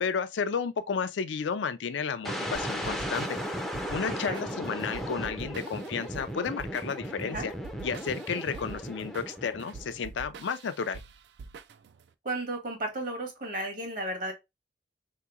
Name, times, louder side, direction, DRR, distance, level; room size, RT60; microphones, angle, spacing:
voice 1, 0.0-3.4 3.9-7.5 7.8-11.0, left 6 dB, 85° left, 0.4 m, -32 dB
sound 1, 2.3-10.1, equal, ahead, 0.4 m, -36 dB
sound 2, 2.5-12.1, right 4 dB, 70° right, 0.3 m, -47 dB
voice 2, 12.2-14.3, right 1 dB, 50° right, 1.1 m, -34 dB
3.4 x 2.9 x 2.3 m
head